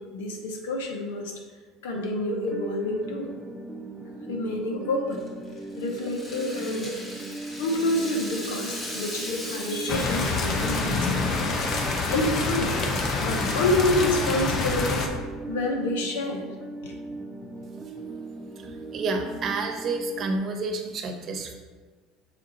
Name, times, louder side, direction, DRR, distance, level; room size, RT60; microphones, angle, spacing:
voice 1, 0.0-1.3 1.8-3.3 4.3-5.2 5.8-6.9 7.6-11.5 12.1-12.8 13.2-15.1 15.5-16.4 16.8-17.0 18.0-18.1, left 1 dB, 90° left, 2 dB, 1.0 m, -28 dB
sound 1, 1.9-20.4, right 2 dB, 15° right, 0.7 m, -39 dB
Rattle (instrument), 5.1-11.3, left 1 dB, 30° left, 1.8 m, -38 dB
sound 2, 9.9-15.1, left 3 dB, 45° left, 0.9 m, -26 dB
voice 2, 18.6-21.6, right 3 dB, 45° right, 4 dB, 0.9 m, -30 dB
6.4 x 3.7 x 4.2 m, 1.4 s
supercardioid pair, 95°, 0 cm